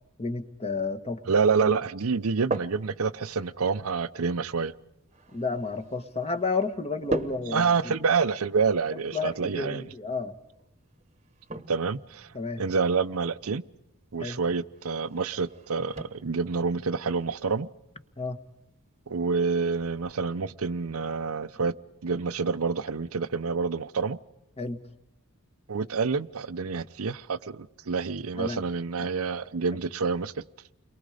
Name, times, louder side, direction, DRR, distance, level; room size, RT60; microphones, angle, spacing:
voice 1, 0.2-1.3 1.6-1.7 5.3-8.0 8.9-10.3 12.3-12.6 14.2-14.4 18.2-18.4 24.6-24.8 28.4-28.6 29.7-29.8, left 4 dB, 30° left, 1.5 m, -31 dB
voice 2, 1.3-4.7 7.5-9.8 11.7-12.3 12.6-13.6 14.1-17.7 19.1-21.7 22.0-24.2 25.7-30.4, right 5 dB, 75° right, 0.7 m, -27 dB
sound 1, 2.1-20.1, right 2 dB, 30° right, 1.2 m, -42 dB
29.5 x 23.0 x 5.1 m
head